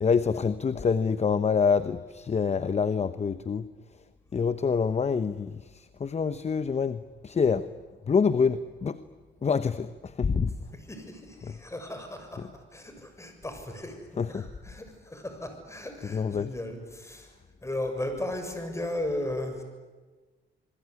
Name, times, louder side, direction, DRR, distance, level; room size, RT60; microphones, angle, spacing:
voice 1, 0.0-3.7 4.3-7.7 8.1-9.0 9.4-10.5 11.4-11.6 12.4-12.5 14.2-14.5 16.1-16.5, left 5 dB, 35° left, 13 dB, 1.0 m, -26 dB
voice 2, 10.4-17.3 17.6-19.6, left 1 dB, 15° left, 6 dB, 7.1 m, -36 dB
27.5 x 21.5 x 9.9 m, 1.3 s
cardioid pair, 90°, 20 cm